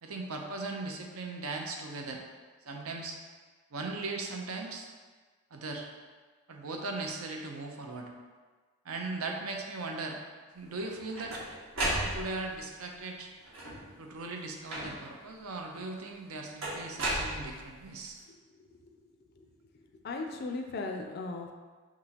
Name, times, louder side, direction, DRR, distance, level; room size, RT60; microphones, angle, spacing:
voice 1, 0.0-2.2 2.7-3.2 3.7-4.9 5.5-5.9 6.5-8.1 8.8-10.2 10.5-11.4 11.8-13.3 14.0-18.2, right 3 dB, 85° right, 2 dB, 0.6 m, -38 dB
sound 1, 10.8-12.6 13.4-14.0 14.7-15.2 16.6-17.9, right 1 dB, 70° right, 1.3 m, -34 dB
voice 2, 18.6-19.1 19.4-19.5 20.0-21.5, left 3 dB, 45° left, 3 dB, 0.4 m, -38 dB
6.0 x 3.0 x 2.8 m, 1.4 s
head